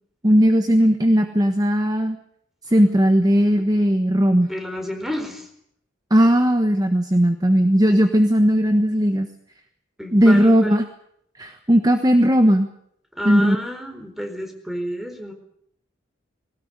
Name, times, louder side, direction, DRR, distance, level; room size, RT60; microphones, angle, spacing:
voice 1, 0.2-2.2 2.7-4.5 6.1-9.3 10.1-10.8 11.4-12.7 13.2-13.6, equal, 20° right, 7 dB, 1.2 m, -17 dB
voice 2, 4.4-5.5 10.0-10.8 13.1-15.3, equal, ahead, 5 dB, 4.3 m, -30 dB
21.0 x 18.5 x 9.6 m, 0.72 s
head